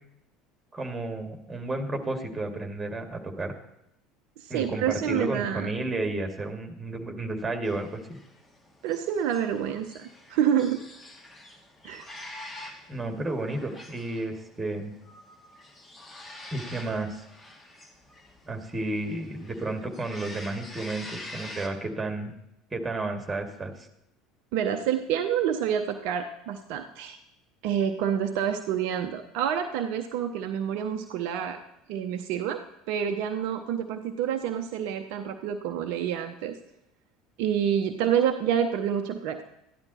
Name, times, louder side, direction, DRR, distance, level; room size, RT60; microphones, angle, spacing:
voice 1, 0.7-3.5 4.5-8.2 12.9-14.9 16.5-17.3 18.5-22.3 22.7-23.9, right 2 dB, 15° right, 4 dB, 2.2 m, -32 dB
voice 2, 4.4-5.7 8.8-10.8 11.8-12.1 24.5-27.2 27.6-31.6 31.9-32.6 32.9-36.6 37.4-39.4, right 9 dB, 55° right, 6 dB, 0.7 m, -28 dB
sound 1, 7.6-21.7, left 1 dB, 20° left, 2.2 m, -46 dB
14.0 x 10.5 x 4.2 m, 0.82 s
figure-of-eight pair, 65°, 0 cm